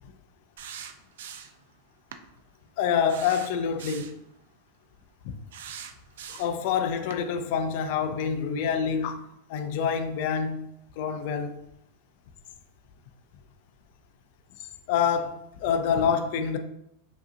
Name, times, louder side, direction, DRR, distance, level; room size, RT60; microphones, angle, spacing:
sound 1, 0.6-1.6 2.1-2.3 3.1-4.2 5.5-6.6 7.1-7.2, right 8 dB, 75° right, 0.3 m, -42 dB
voice 1, 2.8-4.1 5.2-5.4 6.3-10.7 11.0-11.6 14.6-16.6, left 7 dB, 45° left, 0.4 m, -27 dB
5.0 x 2.8 x 2.6 m
supercardioid pair, 180°, 0 cm